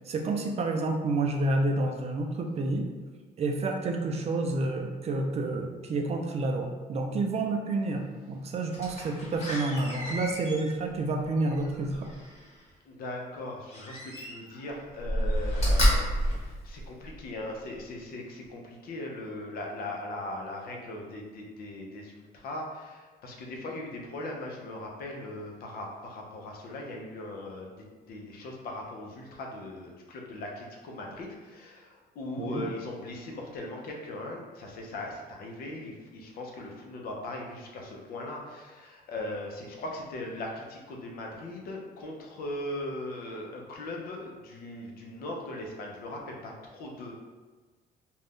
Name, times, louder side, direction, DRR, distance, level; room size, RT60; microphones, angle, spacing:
voice 1, 0.1-2.8 3.4-12.1 32.4-32.7, right 2 dB, 40° right, 3 dB, 0.4 m, -29 dB
Slam, 8.7-12.6 13.7-14.6 15.0-17.3 17.8-17.9, equal, 40° left, 1.2 m, -30 dB
voice 2, 12.8-27.8 28.1-47.1, left 1 dB, 60° left, 0 dB, 0.6 m, -39 dB
2.5 x 2.2 x 3.5 m, 1.3 s
cardioid pair, 110°, 17 cm